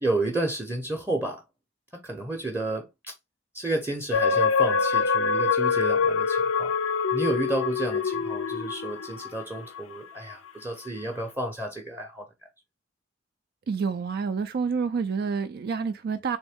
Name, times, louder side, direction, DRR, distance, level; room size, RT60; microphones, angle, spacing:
voice 1, 0.0-1.4 2.0-3.1 3.5-6.7 7.1-12.3, right 2 dB, 10° right, 0.7 m, -31 dB
sound 1, 4.1-9.8 10.3-10.4, left 5 dB, 85° left, 0.4 m, -25 dB
voice 2, 13.7-16.4, right 5 dB, 50° right, 0.3 m, -28 dB
3.6 x 3.1 x 3.4 m
head